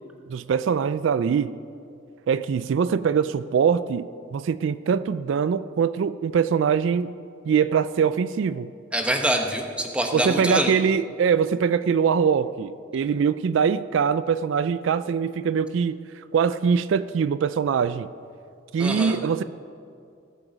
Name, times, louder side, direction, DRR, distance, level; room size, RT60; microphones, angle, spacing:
voice 1, 0.3-1.5 2.3-7.1 7.5-8.7 10.1-16.0 16.3-18.1 18.7-19.4, right 6 dB, 70° right, 14 dB, 0.3 m, -23 dB
voice 2, 8.9-10.7 18.8-19.2, right 1 dB, 5° right, 3 dB, 0.9 m, -25 dB
18.0 x 8.1 x 5.0 m, 2.4 s
head